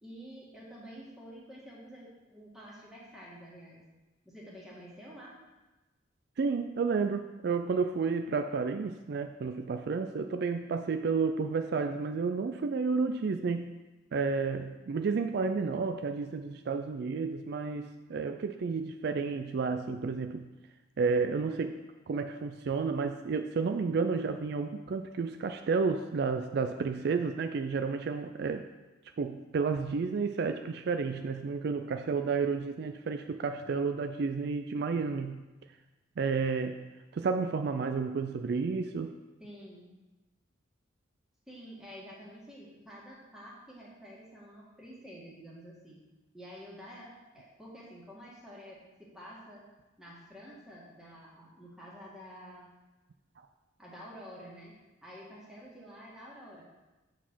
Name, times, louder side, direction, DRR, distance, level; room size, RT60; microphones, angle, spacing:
voice 1, 0.0-3.8 4.3-5.4 39.4-39.9 41.5-46.0 46.3-49.6 50.0-52.6 53.8-54.7 55.0-56.6, equal, ahead, -6 dB, 1.8 m, -49 dB
voice 2, 6.4-13.7 14.1-20.4 21.0-21.8 22.1-28.6 29.2-35.4 36.2-36.8 37.1-39.1, right 4 dB, 55° right, 7 dB, 0.3 m, -31 dB
8.0 x 4.1 x 6.1 m, 1.1 s
head